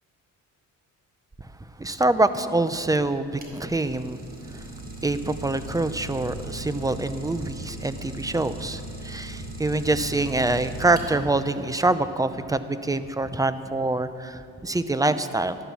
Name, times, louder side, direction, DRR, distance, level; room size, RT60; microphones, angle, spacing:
voice 1, 1.8-4.2 4.5-4.6 5.0-15.6, right 2 dB, 10° right, 12 dB, 0.7 m, -25 dB
Idling, 3.4-11.5, right 2 dB, 30° right, 3.2 m, -38 dB
13.5 x 11.5 x 7.1 m, 2.4 s
cardioid pair, 90°, 32 cm